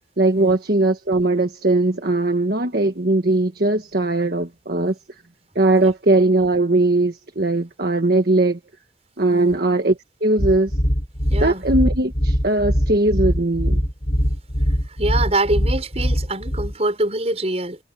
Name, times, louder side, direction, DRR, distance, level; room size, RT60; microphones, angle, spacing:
voice 1, 0.2-5.0 5.5-8.6 9.2-10.7 11.4-13.8, right 2 dB, 55° right, 1.5 m, -19 dB
sound 1, 10.4-16.7, equal, 45° left, 7.7 m, -21 dB
voice 2, 11.3-11.6 15.0-17.8, right 2 dB, 35° right, 6.6 m, -24 dB
head